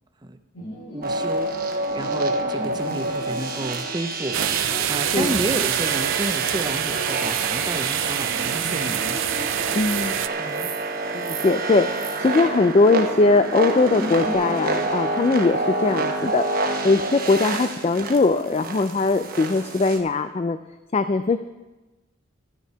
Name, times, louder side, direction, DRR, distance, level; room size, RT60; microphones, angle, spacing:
sound 1, 0.5-14.3, equal, 80° left, 5.4 m, -38 dB
voice 1, 0.9-9.2 10.4-10.7, right 1 dB, 20° right, 8 dB, 0.7 m, -31 dB
sound 2, 1.0-20.0, right 2 dB, 45° right, 1.1 m, -27 dB
sound 3, 4.3-10.3, right 11 dB, 75° right, 0.4 m, -26 dB
voice 2, 9.8-10.2 11.1-20.6 20.9-21.4, left 3 dB, 30° left, 11 dB, 0.3 m, -21 dB
11.0 x 11.0 x 5.6 m, 1.1 s
head